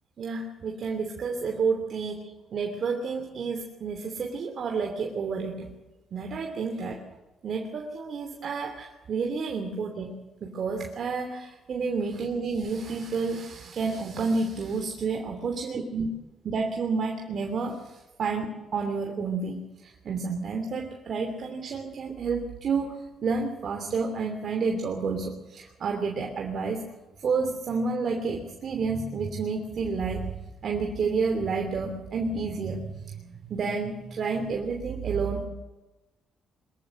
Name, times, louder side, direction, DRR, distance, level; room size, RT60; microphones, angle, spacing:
voice 1, 0.2-2.3 2.5-5.7 6.1-7.0 7.4-10.1 10.4-16.0 16.4-17.8 18.2-19.6 20.0-22.9 23.2-26.8 27.2-30.3 30.6-32.9 33.5-35.4, right 4 dB, 55° right, 3 dB, 3.0 m, -30 dB
23.5 x 14.5 x 7.8 m, 1.1 s
cardioid pair, 90°, 0 cm